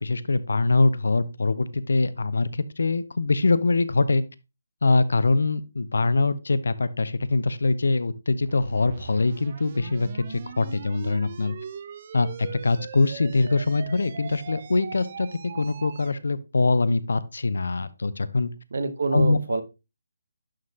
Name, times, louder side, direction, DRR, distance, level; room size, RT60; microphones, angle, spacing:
voice 1, 0.0-4.2 4.8-11.5 12.1-15.3 15.5-18.5 19.1-19.4, left 3 dB, 70° left, 15 dB, 0.7 m, -23 dB
sound 1, 8.4-16.2, right 7 dB, 25° right, 0.3 m, -40 dB
voice 2, 18.7-19.6, right 4 dB, 50° right, 10 dB, 0.9 m, -26 dB
11.5 x 4.0 x 2.8 m, 0.26 s
hypercardioid pair, 180°, 0 cm